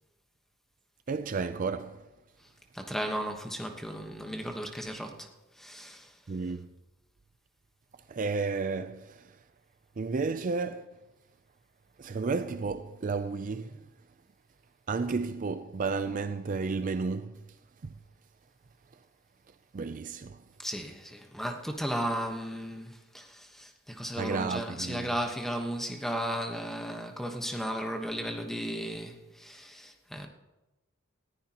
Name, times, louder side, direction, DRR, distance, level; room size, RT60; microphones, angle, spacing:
voice 1, 1.1-2.0 6.3-6.7 8.1-9.4 10.0-10.9 12.0-13.9 14.9-17.4 17.8-17.9 19.7-20.4 24.2-25.1, right 4 dB, 40° right, 0.4 m, -32 dB
voice 2, 2.7-5.3 5.6-6.1 20.6-30.3, equal, ahead, 1.1 m, -35 dB
19.5 x 14.5 x 2.9 m
head